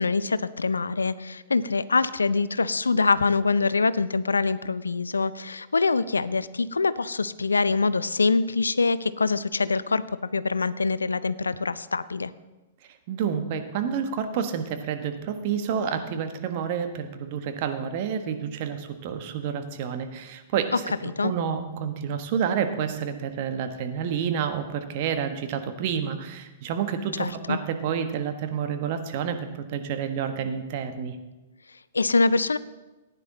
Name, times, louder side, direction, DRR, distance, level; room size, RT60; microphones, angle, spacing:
voice 1, 0.0-10.0 10.3-12.3 21.0-21.3 27.2-27.6 31.9-32.6, left 4 dB, 85° left, 16 dB, 0.5 m, -24 dB
voice 2, 13.1-20.7 21.2-31.2, right 7 dB, 50° right, 8 dB, 1.3 m, -29 dB
15.0 x 9.9 x 3.9 m, 1.1 s
figure-of-eight pair, 110°, 0 cm